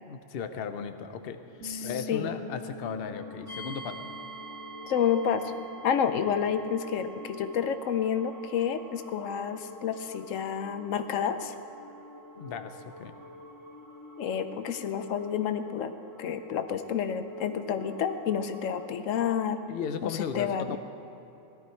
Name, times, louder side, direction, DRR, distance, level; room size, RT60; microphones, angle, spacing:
voice 1, 0.0-1.4 1.8-4.1 12.4-13.2 19.7-20.8, left 7 dB, 55° left, 8 dB, 0.8 m, -36 dB
sound 1, 1.4-19.0, left 1 dB, 15° left, 1.1 m, -49 dB
voice 2, 1.6-2.3 4.9-5.5 5.8-11.5 14.2-15.9 16.2-19.6 20.0-20.8, left 8 dB, 85° left, 9 dB, 1.0 m, -29 dB
sound 2, 1.6-7.9, left 2 dB, 75° right, 1.7 m, -46 dB
sound 3, 3.5-18.3, right 3 dB, 15° right, 2.0 m, -49 dB
17.5 x 13.0 x 4.5 m, 2.9 s
omnidirectional pair, 1.3 m